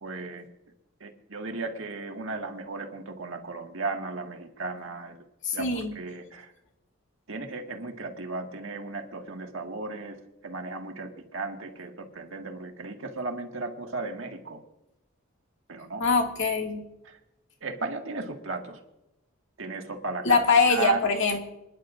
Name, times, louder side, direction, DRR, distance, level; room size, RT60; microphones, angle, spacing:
voice 1, 0.0-0.4 1.0-5.2 5.5-6.5 7.3-14.6 15.7-16.0 17.1-17.2 17.6-18.8 19.6-20.4 20.7-21.0, right 3 dB, 65° right, 3 dB, 1.8 m, -35 dB
voice 2, 5.4-5.9 16.0-16.8 20.2-21.4, left 4 dB, 60° left, 2 dB, 2.1 m, -23 dB
27.5 x 11.0 x 2.6 m, 0.92 s
head